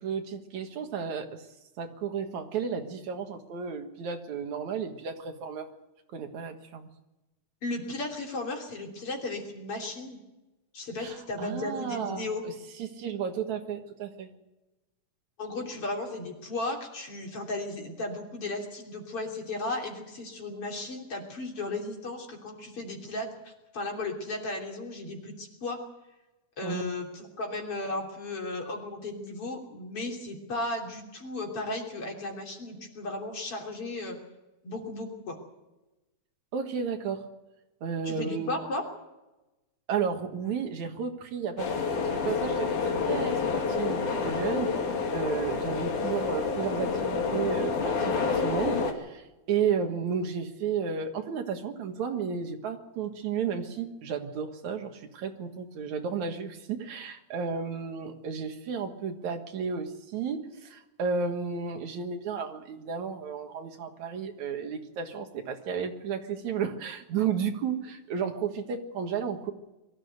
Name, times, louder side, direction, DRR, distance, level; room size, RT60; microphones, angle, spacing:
voice 1, 0.0-1.4 1.8-5.7 6.1-6.9 11.0-12.5 12.8-14.3 26.6-26.9 36.5-37.2 37.8-38.5 39.9-43.4 43.7-44.7 45.1-69.5, right 6 dB, 70° right, 5 dB, 2.9 m, -33 dB
voice 2, 7.6-10.2 10.7-12.4 15.4-25.8 26.6-34.2 34.6-35.4 38.0-38.8, left 2 dB, 50° left, 0 dB, 4.1 m, -35 dB
sound 1, 41.6-48.9, left 5 dB, 85° left, 3.8 m, -28 dB
23.0 x 14.0 x 8.1 m, 1.0 s
omnidirectional pair, 3.4 m